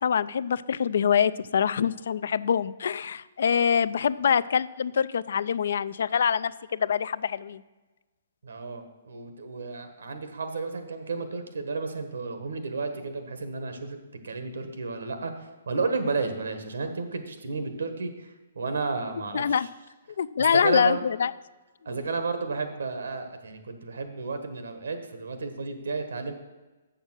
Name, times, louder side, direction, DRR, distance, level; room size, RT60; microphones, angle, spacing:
voice 1, 0.0-7.6 19.3-19.7 20.2-21.3, left 7 dB, 60° left, 17 dB, 0.3 m, -25 dB
voice 2, 8.4-14.0 14.2-19.7 20.5-21.0 21.8-26.3, right 4 dB, 85° right, 7 dB, 1.4 m, -32 dB
7.3 x 6.6 x 6.3 m, 1.2 s
hypercardioid pair, 170°, 0 cm